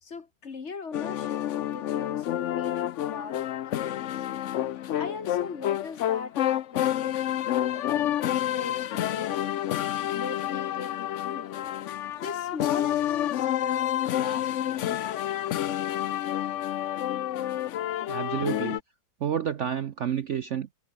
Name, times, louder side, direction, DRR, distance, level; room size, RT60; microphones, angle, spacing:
voice 1, 0.0-1.4 1.7-4.2 4.7-7.4 7.7-9.5 10.1-11.5 11.9-15.2, left 4 dB, 40° left, 1.6 m, -40 dB
sound 1, 0.9-18.8, left 12 dB, 65° left, 0.7 m, -29 dB
voice 2, 18.1-18.8 19.2-20.7, right 9 dB, 55° right, 0.8 m, -30 dB
omnidirectional pair, 1.9 m